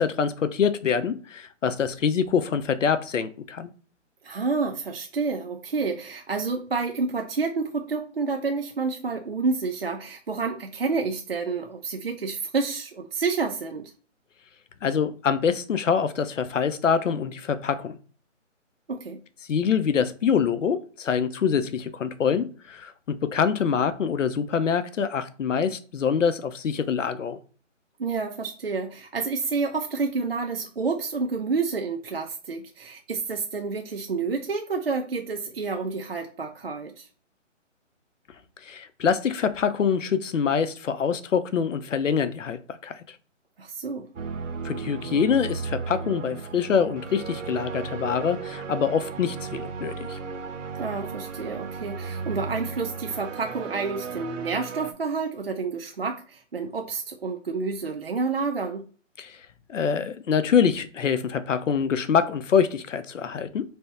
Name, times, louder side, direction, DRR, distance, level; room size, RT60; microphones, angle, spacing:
voice 1, 0.0-3.7 14.8-18.0 19.5-27.4 38.6-43.0 44.6-50.2 59.2-59.4 59.7-63.6, left 7 dB, 75° left, 0.7 m, -25 dB
voice 2, 4.2-13.9 18.9-19.2 28.0-37.1 43.6-44.1 50.8-58.8, right 4 dB, 50° right, 0.5 m, -29 dB
sound 1, 44.2-54.9, right 5 dB, 80° right, 0.8 m, -35 dB
3.5 x 3.4 x 4.1 m
hypercardioid pair, 180°, 38 cm